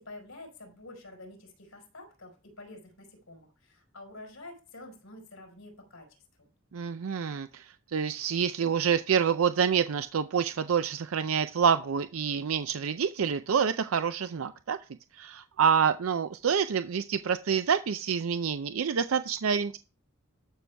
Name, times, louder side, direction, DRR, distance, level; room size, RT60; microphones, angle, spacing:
voice 1, 0.0-6.5, left 2 dB, 85° left, 2 dB, 4.5 m, -48 dB
voice 2, 6.7-14.8 15.1-19.8, right 7 dB, 85° right, 10 dB, 0.5 m, -27 dB
12.0 x 6.2 x 3.4 m, 0.33 s
head